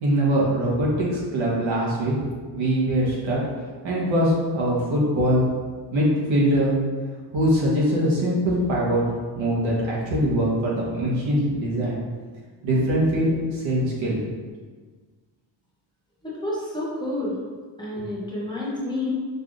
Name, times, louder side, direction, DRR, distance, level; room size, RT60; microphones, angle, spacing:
voice 1, 0.0-2.1 2.5-3.4 3.8-5.5 5.9-6.7 7.3-9.0 9.3-12.0 12.6-14.2 18.0-18.1, equal, 85° right, -5 dB, 1.3 m, -22 dB
voice 2, 16.2-17.4 17.8-19.1, left 1 dB, 10° left, -7 dB, 0.6 m, -29 dB
4.6 x 3.2 x 2.5 m, 1.5 s
wide cardioid pair, 175°, 45 cm